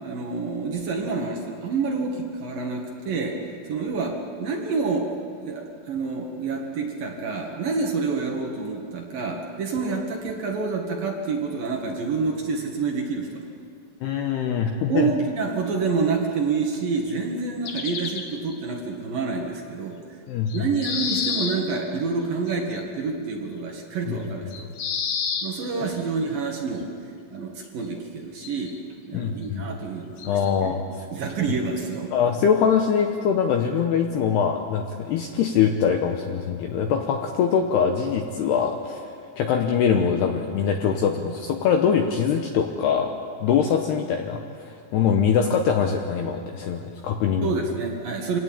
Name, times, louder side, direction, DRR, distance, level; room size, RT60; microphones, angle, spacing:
voice 1, 0.0-3.4 3.7-5.1 5.4-13.5 14.9-20.0 20.5-24.7 25.4-26.9 27.3-28.8 29.1-30.8 31.1-32.1 47.4-48.4, right 4 dB, 55° right, 1 dB, 3.0 m, -28 dB
voice 2, 14.0-15.1 20.3-20.7 24.1-24.2 29.1-29.7 30.2-30.8 32.1-43.1 43.4-47.5, left 7 dB, 75° left, 4 dB, 2.5 m, -23 dB
sound 1, 17.1-17.2 17.7-18.5 20.5-21.6 22.5-22.8 24.5-25.5 26.8-26.9 28.4-28.8 29.2-29.3 30.2-30.6 31.8-31.9, left 6 dB, 60° left, 2.8 m, -29 dB
26.5 x 18.0 x 8.8 m, 2.3 s
omnidirectional pair, 5.9 m